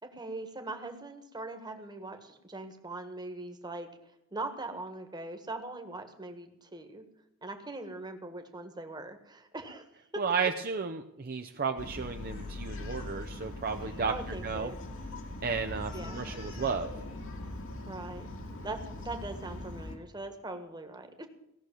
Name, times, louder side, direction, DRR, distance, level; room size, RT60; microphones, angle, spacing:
voice 1, 0.0-7.1 7.4-9.9 10.1-10.2 14.1-14.8 15.9-16.5 17.9-18.3 18.6-21.3, right 2 dB, 20° right, 6 dB, 1.5 m, -41 dB
voice 2, 10.2-14.7 15.4-16.9, right 5 dB, 45° right, 5 dB, 0.7 m, -33 dB
Bark, 11.8-20.0, left 2 dB, 65° left, 2.1 m, -41 dB
17.0 x 6.6 x 9.2 m, 0.84 s
head